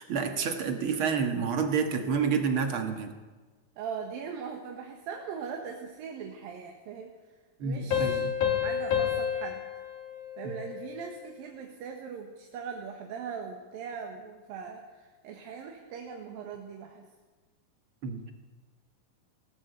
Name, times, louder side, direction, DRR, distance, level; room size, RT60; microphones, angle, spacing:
voice 1, 0.0-3.1 7.6-8.4 10.4-10.5 18.0-18.2, right 6 dB, 50° right, 6 dB, 1.7 m, -29 dB
voice 2, 3.8-7.1 7.6-8.3 8.6-9.6 10.4-17.1, right 6 dB, 85° right, 3 dB, 3.2 m, -40 dB
sound 1, 7.9-11.2, left 9 dB, 80° left, 4.4 m, -30 dB
20.0 x 17.0 x 8.1 m, 1.3 s
omnidirectional pair, 4.1 m